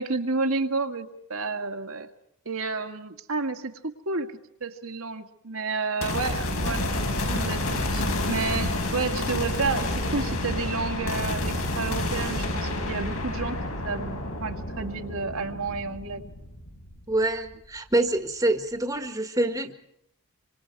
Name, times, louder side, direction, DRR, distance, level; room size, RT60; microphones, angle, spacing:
voice 1, 0.0-2.1 2.5-4.3 4.6-6.9 7.3-16.2, right 4 dB, 70° right, 4 dB, 2.1 m, -31 dB
sound 1, 6.0-17.4, left 1 dB, 75° left, 5.9 m, -29 dB
voice 2, 17.1-19.7, right 2 dB, 15° right, 7 dB, 1.7 m, -26 dB
27.0 x 26.0 x 4.8 m, 0.74 s
head